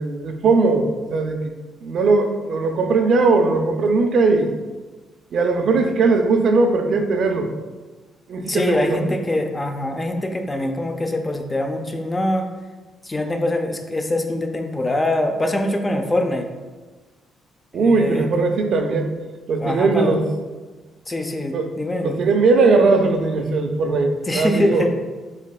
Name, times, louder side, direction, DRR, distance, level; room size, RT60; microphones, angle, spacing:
voice 1, 0.0-1.4 1.8-4.5 5.3-7.5 8.3-9.1 17.7-19.1 19.5-20.2 21.5-21.7 22.0-24.9, right 3 dB, 65° right, 5 dB, 0.4 m, -19 dB
voice 2, 8.4-12.5 13.0-16.5 17.7-18.5 19.6-20.2 21.1-22.2 24.3-24.9, left 1 dB, 20° left, 4 dB, 0.5 m, -23 dB
6.3 x 3.2 x 2.2 m, 1.3 s
cardioid pair, 100°, 0 cm